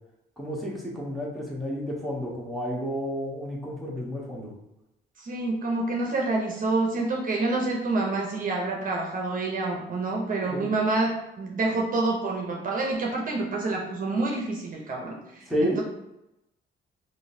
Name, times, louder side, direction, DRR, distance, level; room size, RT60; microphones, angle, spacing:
voice 1, 0.4-4.5 10.2-10.7 15.5-15.8, equal, ahead, -5 dB, 1.0 m, -31 dB
voice 2, 5.2-15.8, right 3 dB, 45° right, -1 dB, 0.7 m, -28 dB
3.8 x 2.6 x 2.6 m, 0.90 s
cardioid pair, 90°, 20 cm